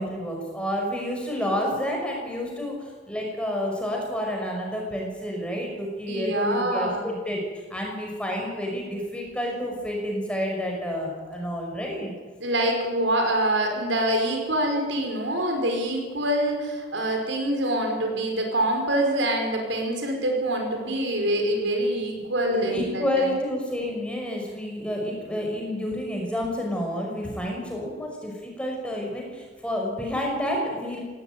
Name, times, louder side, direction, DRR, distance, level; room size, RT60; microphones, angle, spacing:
voice 1, 0.0-7.4 7.7-12.1 22.2-31.0, equal, 5° left, -1 dB, 5.6 m, -29 dB
voice 2, 6.1-7.0 12.4-23.3, right 1 dB, 80° right, 2 dB, 5.4 m, -25 dB
18.0 x 17.5 x 9.3 m, 1.4 s
head